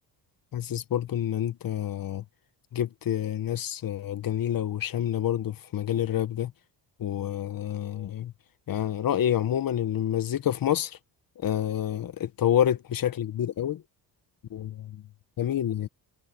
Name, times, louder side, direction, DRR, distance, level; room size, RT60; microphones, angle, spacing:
voice 1, 0.5-2.2 2.7-6.5 7.0-8.3 8.7-11.0 11.4-13.8 14.5-15.0 15.4-15.9, left 10 dB, 55° left, 1.4 m, -28 dB
cardioid pair, 110°, 42 cm